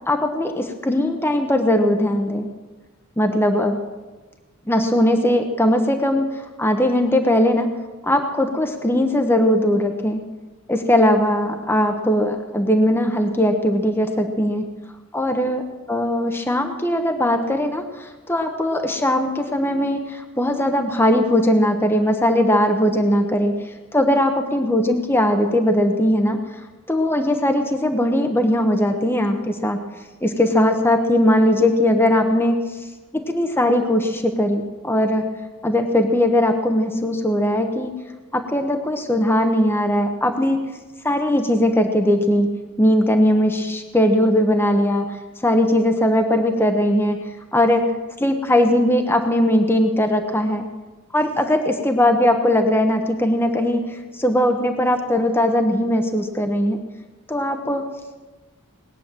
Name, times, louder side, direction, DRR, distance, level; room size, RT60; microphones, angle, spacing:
voice 1, 0.1-2.5 3.2-3.8 4.7-7.7 8.0-10.2 10.7-14.6 15.1-15.6 15.9-23.5 23.9-26.4 26.9-29.8 30.2-32.6 33.1-35.2 35.6-37.9 38.3-40.6 41.0-42.5 42.8-47.2 47.5-50.6 51.1-56.8 57.3-57.9, left 1 dB, 10° left, 5 dB, 1.0 m, -19 dB
20.0 x 9.2 x 7.5 m, 1.2 s
head